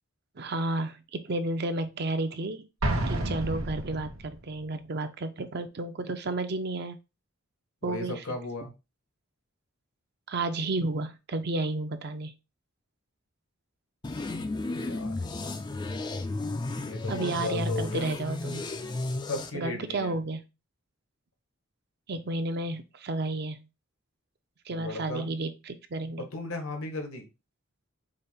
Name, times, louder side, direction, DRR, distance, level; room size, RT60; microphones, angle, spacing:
voice 1, 0.4-2.6 3.1-7.0 7.8-8.2 10.3-12.3 17.1-18.7 19.5-20.4 22.1-23.6 24.7-26.3, right 2 dB, 50° right, 9 dB, 0.5 m, -32 dB
Explosion, 2.8-4.5, right 1 dB, 80° right, 1.0 m, -30 dB
voice 2, 7.8-8.7 14.7-15.1 16.8-18.1 19.2-20.2 24.7-25.3 26.2-27.3, left 2 dB, 80° left, 4 dB, 1.1 m, -36 dB
sound 1, 14.0-19.5, left 2 dB, 20° left, 0.3 m, -33 dB
5.0 x 2.1 x 4.2 m, 0.27 s
head